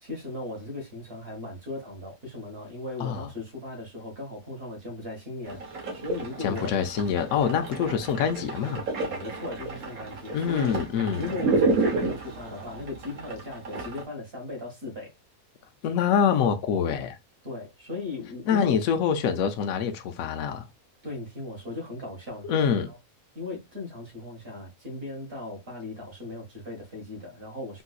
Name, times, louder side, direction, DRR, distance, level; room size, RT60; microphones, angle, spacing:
voice 1, 0.0-6.7 9.0-10.7 11.1-15.1 17.4-18.7 21.0-23.0 23.3-27.8, left 2 dB, 45° right, 1.5 m, -37 dB
sound 1, 5.4-14.0, right 3 dB, 90° right, 1.5 m, -31 dB
voice 2, 6.4-8.9 10.3-11.3 15.8-17.2 18.5-20.6 22.4-22.9, left 7 dB, 80° left, 1.0 m, -25 dB
3.7 x 2.6 x 2.3 m
omnidirectional pair, 1.5 m